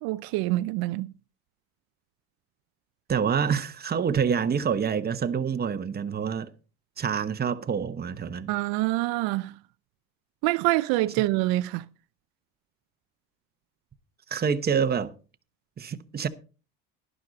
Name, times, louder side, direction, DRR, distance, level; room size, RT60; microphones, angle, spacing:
voice 1, 0.0-1.1 8.5-9.5 10.4-11.8, right 18 dB, 70° right, 0.6 m, -26 dB
voice 2, 3.1-6.5 7.0-8.5 14.3-15.1 15.8-16.3, right 7 dB, 25° right, 1.0 m, -27 dB
11.5 x 11.0 x 4.0 m
supercardioid pair, 105°, 37 cm